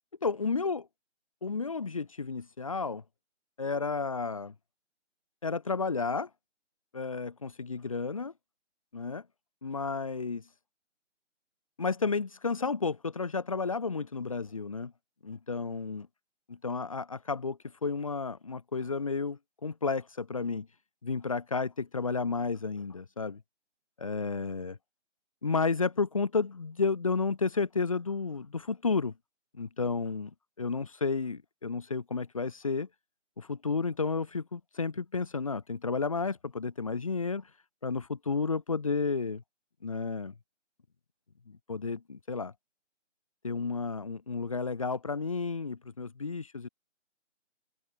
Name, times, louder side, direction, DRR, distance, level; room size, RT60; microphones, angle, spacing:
voice 1, 0.2-0.8 1.4-3.0 3.6-4.5 5.4-6.3 6.9-8.3 8.9-9.2 9.6-10.4 11.8-14.9 15.2-16.1 16.5-20.7 21.0-23.4 24.0-24.8 25.4-29.1 29.6-30.3 30.6-32.9 33.4-37.5 37.8-39.4 39.8-40.3 41.5-42.5 43.4-46.7, left 4 dB, 30° left, 2.8 m, -32 dB
figure-of-eight pair, 180°, 37 cm